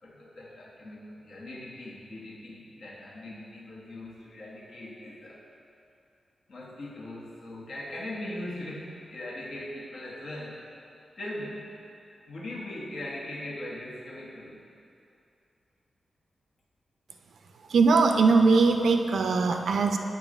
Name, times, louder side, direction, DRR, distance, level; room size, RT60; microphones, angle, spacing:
voice 1, 0.0-5.5 6.5-10.7 11.2-11.7 12.0-14.7, left 1 dB, 65° left, -4 dB, 1.1 m, -40 dB
voice 2, 17.7-20.0, right 4 dB, 80° right, 5 dB, 0.4 m, -21 dB
8.3 x 3.8 x 5.1 m, 2.6 s
wide cardioid pair, 165°, 0 cm